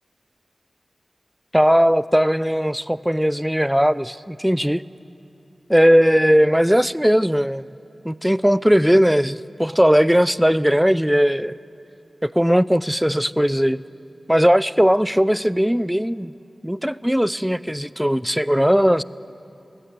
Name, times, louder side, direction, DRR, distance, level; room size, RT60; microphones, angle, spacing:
voice 1, 1.5-4.8 5.7-7.7 8.0-11.5 12.2-13.8 14.3-16.3 16.6-19.0, equal, 5° right, 18 dB, 0.4 m, -18 dB
21.0 x 16.5 x 9.1 m, 2.9 s
wide cardioid pair, 55°, 0 cm